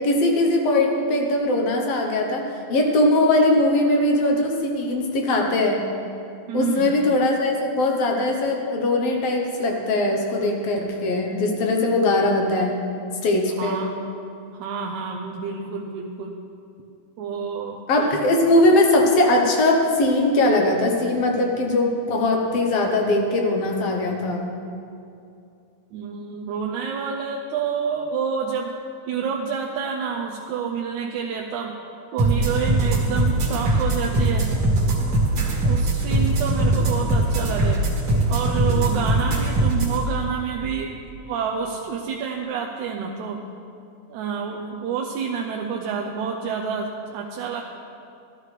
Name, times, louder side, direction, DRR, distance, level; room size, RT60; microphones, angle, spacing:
voice 1, 0.0-5.9 6.5-12.8 13.2-13.9 17.9-24.5, left 1 dB, 65° left, 1 dB, 1.8 m, -20 dB
voice 2, 6.5-7.0 13.6-14.0 14.6-16.4 17.2-17.8 25.9-28.8 29.1-31.8 32.1-34.5 35.6-37.9 38.3-41.0 41.3-43.5 44.1-47.6, right 6 dB, 80° right, 1 dB, 2.0 m, -28 dB
sound 1, 32.2-40.0, right 2 dB, 50° right, 2.2 m, -21 dB
13.5 x 13.0 x 3.3 m, 2.6 s
omnidirectional pair, 3.5 m